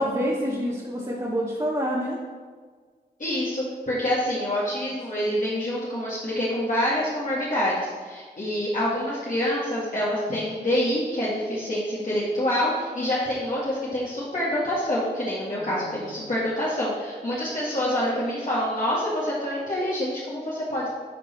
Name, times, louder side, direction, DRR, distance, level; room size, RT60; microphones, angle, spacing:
voice 1, 0.0-2.2 15.6-16.2, equal, 25° right, -6 dB, 1.7 m, -27 dB
voice 2, 3.2-20.9, left 1 dB, 50° left, -8 dB, 2.1 m, -26 dB
11.5 x 4.0 x 4.4 m, 1.5 s
cardioid pair, 40°, 18 cm